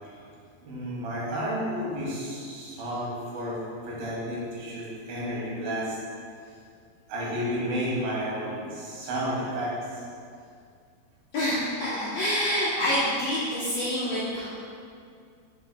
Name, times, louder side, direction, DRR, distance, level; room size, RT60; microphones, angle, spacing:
voice 1, 0.6-6.0 7.1-10.0, equal, 75° right, -6 dB, 3.4 m, -31 dB
voice 2, 11.3-14.5, equal, 70° left, -9 dB, 1.7 m, -27 dB
8.3 x 6.9 x 2.3 m, 2.3 s
omnidirectional pair, 4.2 m